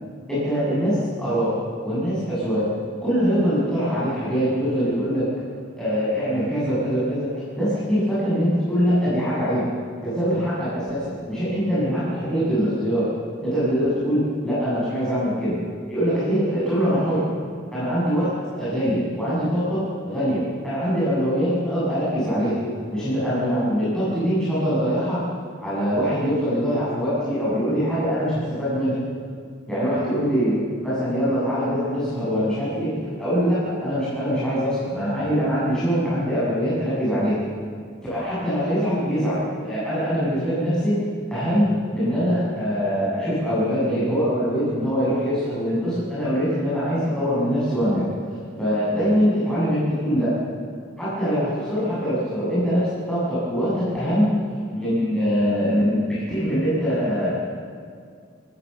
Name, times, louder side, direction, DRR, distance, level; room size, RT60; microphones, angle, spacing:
voice 1, 0.3-1.5 1.8-2.7 3.0-5.3 5.8-7.3 7.6-9.7 10.0-13.1 13.4-15.6 15.9-17.3 17.7-22.6 22.9-25.2 25.6-28.9 29.7-37.4 38.1-41.0 41.3-48.0 48.6-50.3 51.0-54.3 54.7-57.5, equal, 5° left, -11 dB, 7.5 m, -23 dB
29.5 x 15.0 x 7.0 m, 2.2 s
head